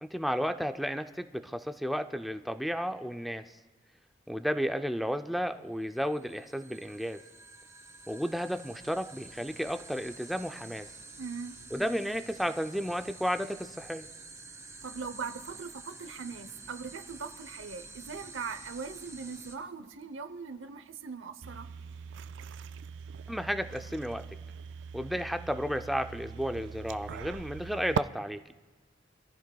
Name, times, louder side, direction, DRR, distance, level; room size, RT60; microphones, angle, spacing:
voice 1, 0.0-3.5 4.3-7.2 8.1-10.9 11.7-14.1 23.3-24.2 24.9-28.4, equal, ahead, 7 dB, 0.5 m, -33 dB
sound 1, 5.9-19.6, right 3 dB, 15° right, 1.2 m, -49 dB
voice 2, 11.2-11.6 14.8-21.7, right 5 dB, 90° right, 10 dB, 0.9 m, -40 dB
sound 2, 21.4-28.0, right 7 dB, 65° right, 0.3 m, -40 dB
25.5 x 14.5 x 2.3 m, 1.3 s
head